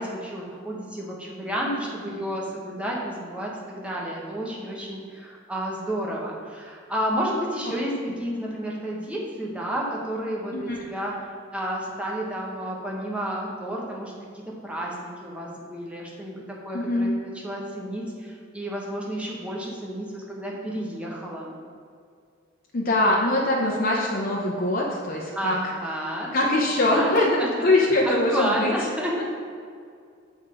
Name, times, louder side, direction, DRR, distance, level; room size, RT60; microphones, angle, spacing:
voice 1, 0.0-11.1 11.5-21.5 25.4-26.3 26.8-27.5 28.0-29.1, right 1 dB, 5° right, -3 dB, 1.0 m, -31 dB
voice 2, 16.7-17.2 22.7-25.6 26.3-28.7, left 1 dB, 50° left, -2 dB, 0.7 m, -22 dB
6.4 x 3.7 x 4.8 m, 2.2 s
head